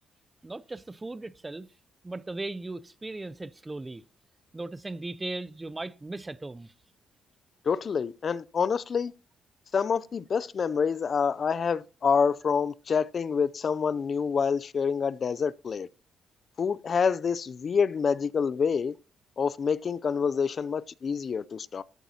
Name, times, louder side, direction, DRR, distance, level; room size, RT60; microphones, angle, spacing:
voice 1, 0.4-1.7 2.0-4.0 4.5-6.7, right 2 dB, 20° right, 0.6 m, -37 dB
voice 2, 7.7-9.1 9.7-15.9 16.6-18.9 19.4-21.8, left 6 dB, 45° left, 0.4 m, -27 dB
14.0 x 8.1 x 2.8 m
cardioid pair, 90°, 0 cm